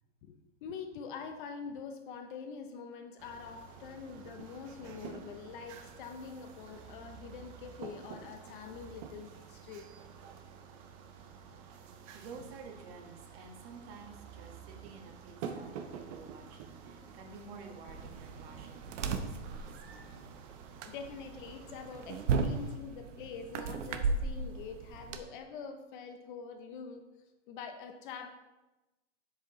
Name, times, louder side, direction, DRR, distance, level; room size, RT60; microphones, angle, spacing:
voice 1, 0.2-9.9 20.8-27.0 27.5-28.3, left 6 dB, 40° left, 6 dB, 0.7 m, -45 dB
sound 1, 3.2-22.8, right 6 dB, 25° right, 0.5 m, -49 dB
voice 2, 12.0-20.4, right 4 dB, 50° right, 2 dB, 1.5 m, -51 dB
sound 2, 17.9-25.2, right 4 dB, 70° right, 0.9 m, -36 dB
7.7 x 7.1 x 3.1 m, 1.1 s
supercardioid pair, 155°, 38 cm